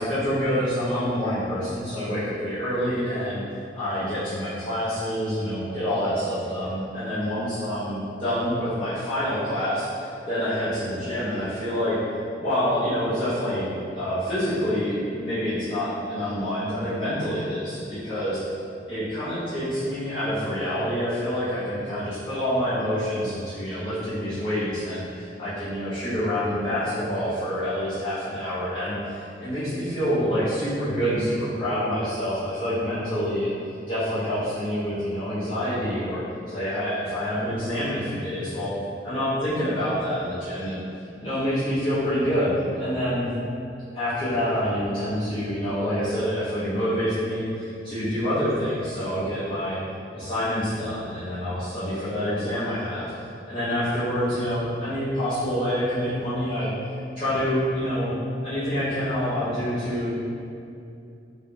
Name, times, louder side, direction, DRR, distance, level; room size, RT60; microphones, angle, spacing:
voice 1, 0.0-3.4 3.7-12.0 12.4-18.4 18.9-33.5 33.9-38.7 39.0-40.8 41.2-43.3 43.9-49.8 50.1-53.1 53.5-56.7 57.2-58.2 58.4-60.1, equal, 30° left, -14 dB, 0.5 m, -27 dB
3.3 x 2.2 x 2.4 m, 2.6 s
head